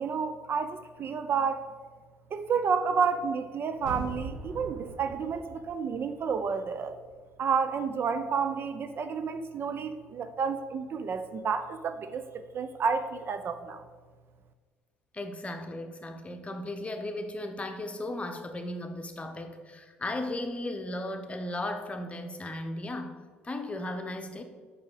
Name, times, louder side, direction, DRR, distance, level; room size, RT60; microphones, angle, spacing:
voice 1, 0.0-1.6 2.3-7.0 7.4-13.9, right 6 dB, 45° right, 10 dB, 0.5 m, -30 dB
sound 1, 3.7-6.7 7.0-7.1, right 3 dB, 65° right, 1.6 m, -42 dB
voice 2, 15.1-23.2 23.4-24.4, left 1 dB, 25° left, 5 dB, 1.0 m, -36 dB
5.3 x 4.9 x 6.3 m, 1.5 s
hypercardioid pair, 60°, 5 cm